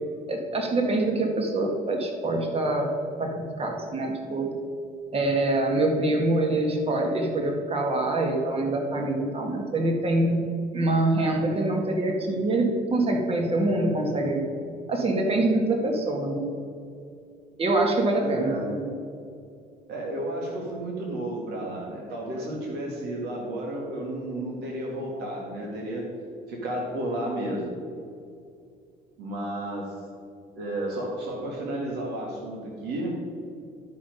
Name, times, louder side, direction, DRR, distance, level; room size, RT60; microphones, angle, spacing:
voice 1, 0.3-2.9 3.2-4.5 5.1-10.5 10.7-14.5 14.9-16.6 17.6-18.9 22.4-22.6, right 2 dB, 35° right, 2 dB, 1.7 m, -25 dB
voice 2, 18.2-18.7 19.9-26.0 26.5-27.7 29.2-30.0 30.6-33.1, right 1 dB, 80° right, -2 dB, 2.1 m, -32 dB
11.5 x 5.8 x 5.3 m, 2.4 s
cardioid pair, 110°, 17 cm